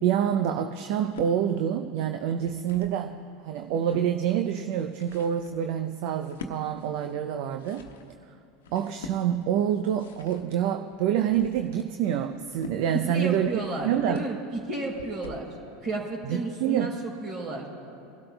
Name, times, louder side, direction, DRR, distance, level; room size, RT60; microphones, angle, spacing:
voice 1, 0.0-3.2 3.4-7.9 8.7-14.2 16.3-17.0, right 9 dB, 60° right, 7 dB, 0.6 m, -27 dB
sound 1, 0.9-1.4 2.1-3.0 3.5-4.1 4.7-15.5, left 4 dB, 75° left, 1.0 m, -46 dB
voice 2, 13.1-14.4 14.7-15.5 15.8-17.7, right 2 dB, 45° right, -1 dB, 3.8 m, -32 dB
25.5 x 12.5 x 2.3 m, 2.5 s
hypercardioid pair, 85°, 0 cm